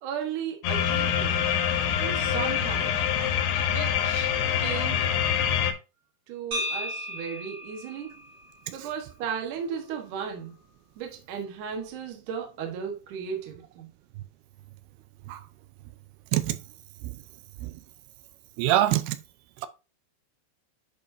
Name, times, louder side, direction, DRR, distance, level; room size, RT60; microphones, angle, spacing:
voice 1, 0.0-1.6 2.0-3.0 3.7-5.1 6.3-8.2 8.7-10.6 11.0-13.9, right 7 dB, 65° right, 2.3 m, -35 dB
sound 1, 0.6-5.7, left 9 dB, 80° left, 3.2 m, -25 dB
sound 2, 6.5-10.6, left 1 dB, 40° right, 2.9 m, -37 dB
voice 2, 18.6-19.2, right 13 dB, 80° right, 2.4 m, -24 dB
10.5 x 5.4 x 2.6 m
omnidirectional pair, 4.9 m